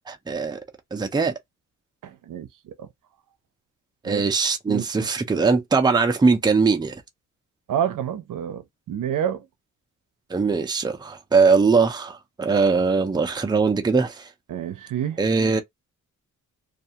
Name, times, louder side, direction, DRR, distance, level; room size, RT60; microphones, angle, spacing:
voice 1, 0.1-0.6 0.9-1.3 4.0-7.0 10.3-14.3 15.2-15.6, right 4 dB, 15° right, 0.5 m, -21 dB
voice 2, 2.0-2.5 4.1-4.2 4.7-4.9 7.7-9.4 14.5-15.2, right 9 dB, 75° right, 0.6 m, -28 dB
2.4 x 2.3 x 2.8 m
wide cardioid pair, 140°, 32 cm